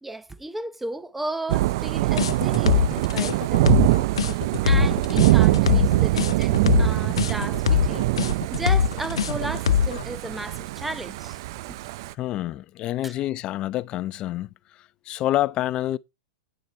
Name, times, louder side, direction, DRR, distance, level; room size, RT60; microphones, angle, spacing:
voice 1, 0.0-3.8 4.6-8.1 8.5-11.8 13.0-13.3, right 1 dB, 5° right, 0.7 m, -35 dB
Thunder / Rain, 1.5-12.1, right 18 dB, 55° right, 0.4 m, -23 dB
sound 1, 2.2-10.0, left 8 dB, 90° left, 0.5 m, -22 dB
voice 2, 12.2-16.0, left 14 dB, 35° left, 0.5 m, -28 dB
9.0 x 6.6 x 4.3 m
hypercardioid pair, 130°, 3 cm